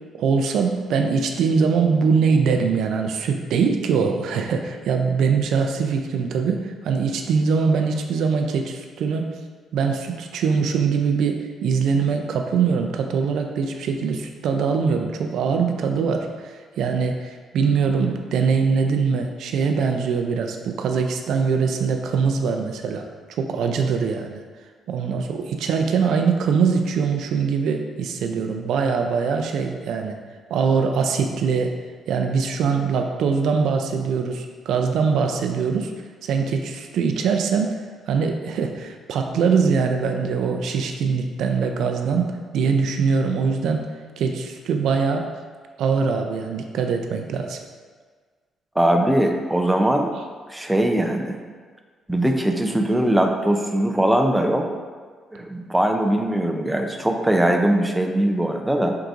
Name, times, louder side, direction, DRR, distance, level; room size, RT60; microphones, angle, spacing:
voice 1, 0.1-9.3 9.7-24.4 24.9-30.2 30.5-31.7 32.1-35.9 36.2-37.8 38.1-43.9 44.2-45.3 45.8-47.6, right 5 dB, 75° right, 4 dB, 0.4 m, -22 dB
voice 2, 48.8-51.4 52.1-54.7 55.3-59.0, right 1 dB, 5° right, 3 dB, 0.4 m, -21 dB
4.6 x 3.8 x 2.5 m, 1.5 s
cardioid pair, 90°, 0 cm